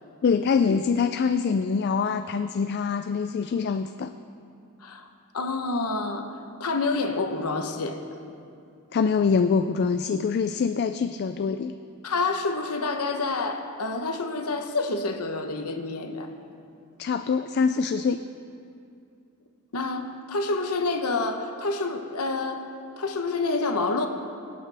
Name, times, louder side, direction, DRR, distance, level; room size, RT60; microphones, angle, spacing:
voice 1, 0.2-4.1 8.9-11.7 17.0-18.2, left 5 dB, 50° left, 9 dB, 0.3 m, -24 dB
voice 2, 5.3-8.0 12.0-16.3 19.7-22.7 23.0-24.1, left 3 dB, 90° left, 5 dB, 1.0 m, -28 dB
24.0 x 8.7 x 3.4 m, 2.5 s
head